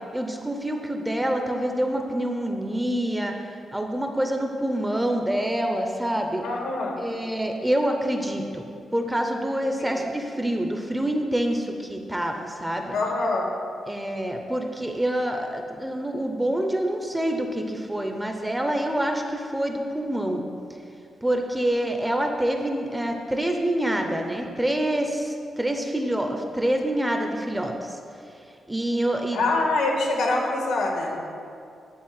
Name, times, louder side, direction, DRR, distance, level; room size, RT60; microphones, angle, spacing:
voice 1, 0.1-3.3 3.7-6.4 7.0-8.6 8.9-13.0 13.9-20.4 21.2-28.0 28.7-29.5 30.1-30.3, right 1 dB, 5° right, 3 dB, 0.6 m, -26 dB
voice 2, 6.4-7.0 9.8-9.9 12.9-13.5 29.3-31.2, left 2 dB, 80° left, 0 dB, 1.6 m, -25 dB
10.5 x 4.3 x 7.4 m, 2.5 s
wide cardioid pair, 180°, 0 cm